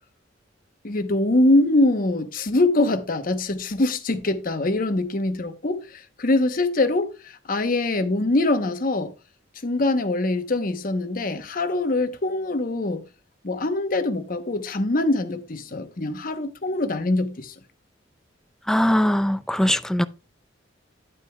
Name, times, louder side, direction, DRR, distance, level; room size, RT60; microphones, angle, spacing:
voice 1, 0.8-9.1 9.6-13.0 13.4-17.5, left 2 dB, 45° left, 0.8 m, -23 dB
voice 2, 18.7-20.0, left 1 dB, 5° left, 0.3 m, -21 dB
9.5 x 8.8 x 2.2 m
head